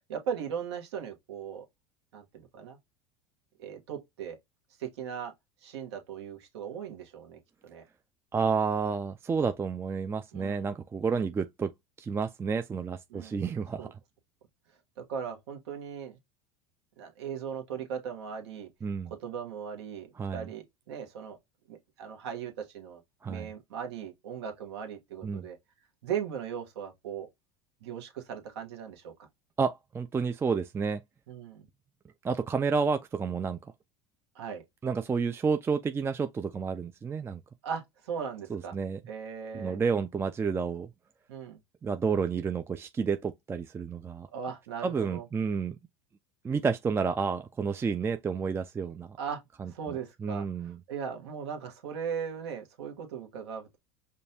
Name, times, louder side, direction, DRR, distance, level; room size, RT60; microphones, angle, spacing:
voice 1, 0.1-1.6 2.1-2.8 3.6-4.4 4.8-5.3 5.6-7.4 7.7-7.8 10.3-10.7 11.1-11.2 13.1-13.4 13.8-13.9 15.1-16.2 17.0-18.7 19.2-20.1 20.3-21.4 21.7-23.0 23.3-25.6 26.0-27.3 27.8-29.1 31.3-31.7 34.3-34.6 37.6-38.7 39.1-39.8 41.3-41.6 44.3-45.3 49.2-49.4 49.7-53.8, right 7 dB, 80° right, 1.1 m, -38 dB
voice 2, 8.3-11.7 12.0-14.0 18.8-19.1 20.2-20.5 23.2-23.5 25.2-25.5 29.6-31.0 32.2-33.7 34.8-37.4 38.5-39.0 39.5-40.9 41.8-44.3 44.8-45.8 46.4-49.2 49.6-50.8, right 5 dB, 15° right, 0.3 m, -30 dB
5.1 x 2.3 x 2.7 m
hypercardioid pair, 85°, 14 cm